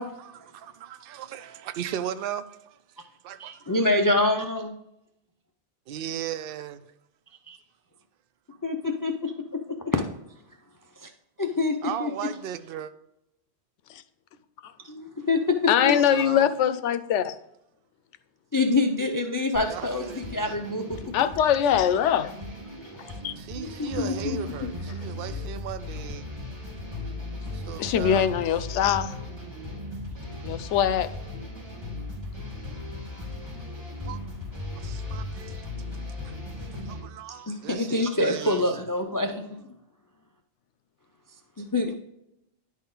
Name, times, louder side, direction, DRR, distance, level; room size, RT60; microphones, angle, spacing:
voice 1, 0.2-2.8 3.2-3.8 5.9-6.8 11.8-12.9 15.9-16.5 19.6-20.6 23.4-26.2 27.5-28.5 34.1-34.2 34.8-35.7 36.2-36.3 36.6-38.8, right 10 dB, 60° right, 0.7 m, -37 dB
voice 2, 3.4-4.7 7.5-7.6 8.6-9.6 9.9-10.0 11.0-11.1 11.4-12.1 14.9-16.0 18.5-21.1 23.6-24.4 37.5-39.4 41.6-42.0, left 2 dB, 35° left, 0.3 m, -26 dB
voice 3, 15.7-17.3 21.1-22.3 23.2-23.3 27.8-29.2 30.4-31.1, left 9 dB, 85° left, 0.9 m, -22 dB
sound 1, 19.5-37.0, left 2 dB, 25° right, 2.9 m, -37 dB
10.5 x 4.3 x 3.8 m
omnidirectional pair, 1.2 m